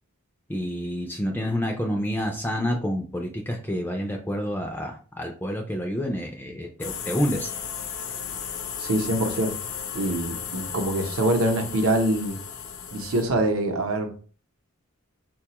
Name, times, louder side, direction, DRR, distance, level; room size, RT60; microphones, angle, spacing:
voice 1, 0.5-7.5, equal, 10° left, 3 dB, 0.3 m, -28 dB
sound 1, 6.8-13.2, left 7 dB, 70° left, 0.5 m, -35 dB
voice 2, 8.8-9.5 9.9-12.4 12.9-14.1, right 1 dB, 70° right, 5 dB, 0.7 m, -24 dB
4.0 x 2.3 x 2.8 m, 0.40 s
head